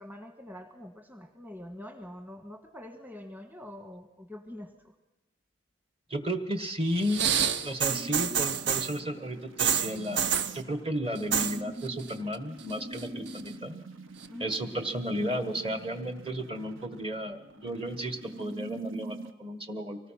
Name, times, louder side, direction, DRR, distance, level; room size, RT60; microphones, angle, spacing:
voice 1, 0.0-4.9 14.3-14.5, left 1 dB, 10° right, 4 dB, 1.5 m, -45 dB
voice 2, 6.1-7.3 7.6-13.8 14.4-20.0, equal, 30° right, 7 dB, 1.5 m, -33 dB
sound 1, 7.0-9.0 9.6-10.6 11.2-11.6 11.8-12.4 12.7-13.5 14.2-14.3, right 8 dB, 60° right, 0.8 m, -28 dB
sound 2, 7.9-19.3, right 2 dB, 80° right, 1.3 m, -44 dB
25.0 x 19.0 x 5.8 m, 1.0 s
head